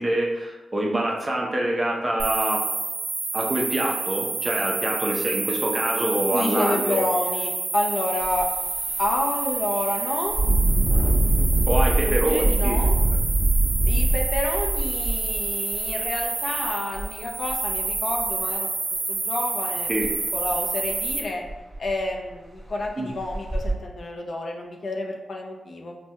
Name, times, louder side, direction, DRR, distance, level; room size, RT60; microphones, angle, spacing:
voice 1, 0.0-2.6 3.3-7.0 11.7-12.8 19.9-20.1 23.0-23.1, right 1 dB, 25° right, -1 dB, 0.5 m, -25 dB
sound 1, 2.2-21.2, right 3 dB, 75° right, 0.6 m, -29 dB
voice 2, 6.3-8.5 9.0-10.4 12.0-12.9 13.9-18.7 19.1-19.9 20.3-21.4 21.8-25.9, left 2 dB, 50° left, 1 dB, 0.5 m, -29 dB
Engine, 8.2-8.4 8.9-9.0 10.3-16.1 16.9-17.0 17.5-18.2 20.0-20.1 20.5-20.6 21.1-21.2 21.5-22.0 22.6-22.7 23.3-23.7, right 1 dB, 10° left, 1.0 m, -22 dB
4.3 x 2.2 x 2.7 m, 1.1 s
wide cardioid pair, 125°, 0 cm